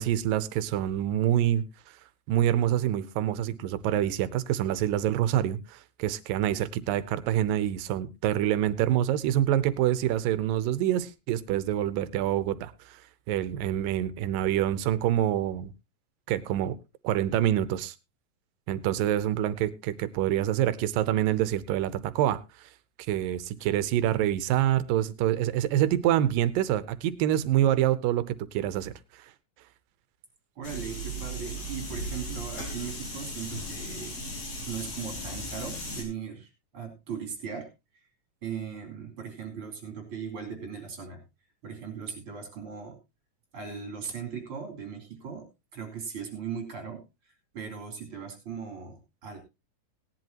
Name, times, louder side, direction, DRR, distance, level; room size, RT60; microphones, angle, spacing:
voice 1, 0.0-1.6 2.3-13.0 13.3-15.7 16.3-16.8 17.0-18.0 18.7-22.4 23.1-28.9, right 12 dB, 90° right, 15 dB, 2.5 m, -26 dB
sound 1, 30.6-36.0, equal, 55° left, 4.7 m, -37 dB
voice 2, 30.6-34.2 34.7-38.0 38.4-41.3 41.6-43.0 43.5-49.4, right 6 dB, 40° right, 3 dB, 4.1 m, -38 dB
18.0 x 10.5 x 2.8 m, 0.25 s
omnidirectional pair, 3.8 m